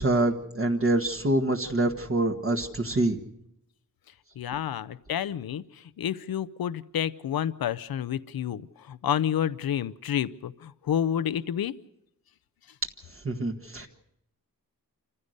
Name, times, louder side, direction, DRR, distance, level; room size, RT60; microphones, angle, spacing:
voice 1, 0.0-3.2 13.2-13.9, right 1 dB, 40° right, 2 dB, 1.6 m, -25 dB
voice 2, 4.4-11.8, left 9 dB, 85° left, 14 dB, 0.7 m, -29 dB
27.5 x 15.5 x 6.5 m, 0.80 s
wide cardioid pair, 130°, 35 cm